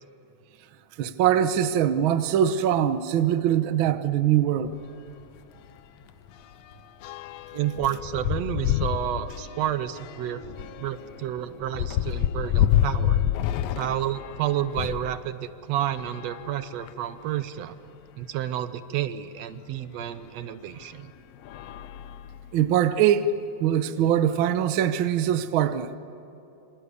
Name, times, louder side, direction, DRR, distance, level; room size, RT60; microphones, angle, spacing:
voice 1, 1.0-4.7 22.5-23.3 23.6-25.9, right 10 dB, 90° right, 1.1 m, -22 dB
sound 1, 4.6-4.8 5.2-5.4 5.6-15.1 15.8-17.2 17.9-18.0 18.2-18.3 20.0-20.1 20.8-21.0 21.4-22.7, left 11 dB, 75° left, 1.5 m, -29 dB
voice 2, 7.5-10.4 10.8-13.2 13.7-17.7 18.2-21.1, right 11 dB, 70° right, 1.7 m, -30 dB
27.0 x 25.5 x 8.2 m
omnidirectional pair, 3.7 m